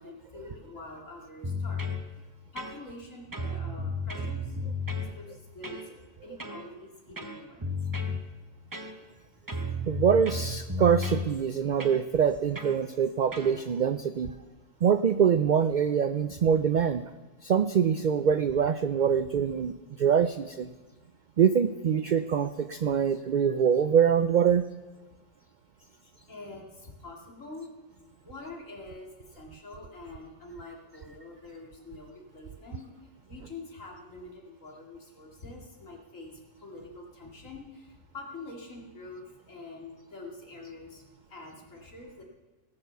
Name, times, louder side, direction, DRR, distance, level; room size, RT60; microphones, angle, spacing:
voice 1, 0.0-1.8 2.5-4.5 4.9-5.8 6.2-7.6 26.3-27.7 28.2-29.1 29.4-32.9 33.3-36.3 36.6-37.9 38.1-41.0 41.3-42.2, left 3 dB, 80° left, -1 dB, 2.8 m, -45 dB
sound 1, 1.4-2.0 2.6-3.0 3.3-5.1 5.6-5.9 6.4-6.7 7.2-8.2 8.7-9.2 9.5-11.3 11.8-12.0 12.6-12.8 13.3-13.6, left 2 dB, 20° right, 0.8 m, -33 dB
voice 2, 9.9-14.4 14.8-17.1 17.4-20.7 21.4-24.6, right 7 dB, 70° right, 11 dB, 0.4 m, -24 dB
17.5 x 7.0 x 6.8 m, 1.2 s
omnidirectional pair, 1.3 m